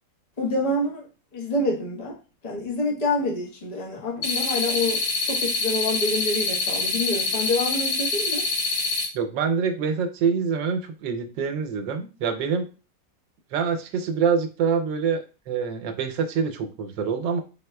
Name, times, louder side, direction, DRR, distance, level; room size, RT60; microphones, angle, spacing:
voice 1, 0.4-1.0 1.3-2.2 2.4-8.4, left 2 dB, 30° left, 0.9 m, -27 dB
sound 1, 4.2-9.1, left 3 dB, 85° left, 1.9 m, -25 dB
voice 2, 9.1-12.7 13.5-17.4, right 6 dB, 80° right, 1.3 m, -25 dB
4.6 x 4.2 x 2.2 m
omnidirectional pair, 2.0 m